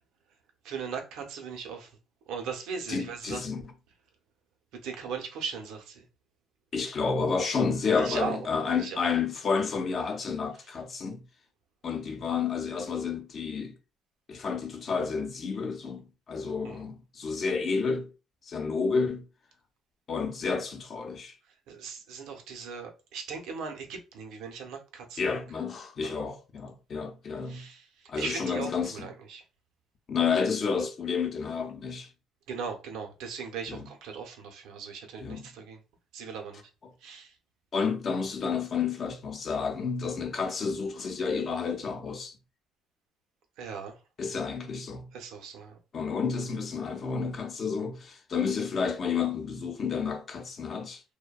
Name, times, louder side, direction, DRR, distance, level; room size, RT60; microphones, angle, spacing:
voice 1, 0.6-1.9 2.3-3.4 4.8-6.0 8.0-8.4 8.8-9.1 16.6-16.8 21.7-25.2 26.0-26.2 27.4-29.4 32.5-35.8 36.1-36.6 37.0-37.3 43.6-44.0 45.1-45.8, right 6 dB, 90° right, 0.6 m, -38 dB
voice 2, 2.9-3.6 6.7-11.2 11.8-13.7 14.3-18.1 18.5-19.2 20.1-21.4 25.2-27.7 28.1-29.1 30.1-32.1 33.7-33.9 35.2-35.5 37.7-42.4 44.2-45.1 45.9-51.0, left 5 dB, 45° left, 0.6 m, -30 dB
2.6 x 2.1 x 2.2 m
cardioid pair, 105°, 0 cm